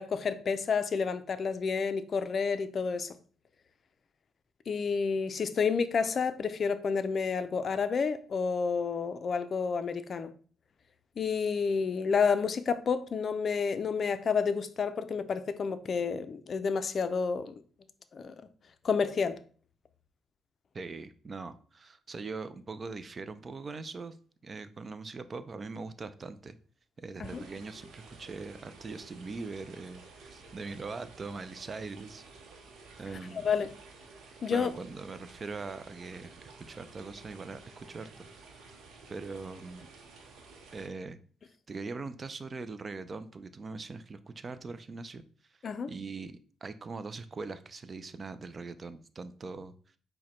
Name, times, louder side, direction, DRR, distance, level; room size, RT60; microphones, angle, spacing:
voice 1, 0.0-3.1 4.7-10.3 11.2-17.5 18.1-18.4 18.8-19.4 27.2-27.5 33.3-33.7 34.4-34.7 45.6-45.9, left 5 dB, 50° left, 0.4 m, -30 dB
voice 2, 20.7-24.2 24.4-26.6 27.0-32.2 33.0-33.5 34.5-38.3 39.1-39.9 40.7-41.2 41.7-45.2 45.9-46.3 46.6-49.7, right 4 dB, 35° right, 0.4 m, -41 dB
sound 1, 27.2-40.9, right 4 dB, 80° right, 0.7 m, -52 dB
4.7 x 2.1 x 4.2 m
cardioid pair, 90°, 0 cm